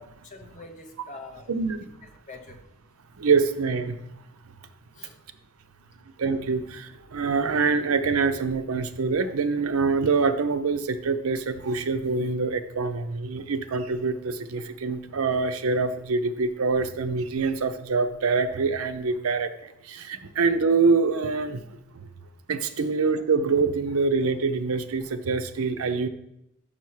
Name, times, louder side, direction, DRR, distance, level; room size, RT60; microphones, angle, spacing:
voice 1, 0.2-1.5 1.8-2.6 4.9-5.2 22.8-22.9, left 3 dB, 35° left, 4 dB, 0.8 m, -45 dB
voice 2, 3.2-4.0 6.2-19.5 19.9-21.6 22.5-26.1, right 4 dB, 75° right, 9 dB, 0.6 m, -25 dB
5.8 x 5.6 x 4.7 m, 0.82 s
head